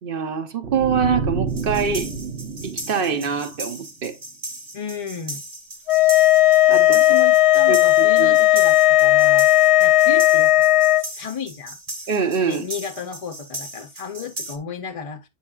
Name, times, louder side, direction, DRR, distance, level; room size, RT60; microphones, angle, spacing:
voice 1, 0.0-2.1 2.6-4.2 6.7-7.0 7.7-8.4 12.1-12.6, right 6 dB, 60° right, 1.0 m, -24 dB
sound 1, 0.6-3.9, right 4 dB, 85° right, 1.6 m, -29 dB
sound 2, 1.5-14.6, right 1 dB, 35° right, 1.2 m, -37 dB
voice 2, 4.7-5.4 6.7-9.5 9.8-10.7 10.9-11.8 12.5-15.3, left 6 dB, 45° left, 0.5 m, -33 dB
sound 3, 5.9-11.0, left 14 dB, 90° left, 0.8 m, -15 dB
8.7 x 5.5 x 2.3 m
omnidirectional pair, 1.1 m